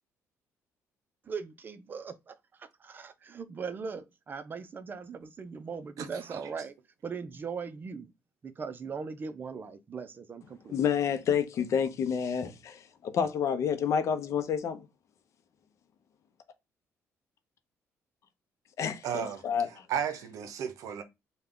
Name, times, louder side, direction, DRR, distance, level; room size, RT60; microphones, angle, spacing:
voice 1, 1.3-6.7 7.0-8.1 8.4-10.8, right 5 dB, 35° right, 0.5 m, -40 dB
voice 2, 6.0-6.5 19.0-19.4 19.9-21.0, right 8 dB, 75° right, 0.6 m, -34 dB
voice 3, 10.7-14.9 18.8-19.7, left 7 dB, 60° left, 0.6 m, -29 dB
3.4 x 2.2 x 3.6 m
cardioid pair, 110°, 6 cm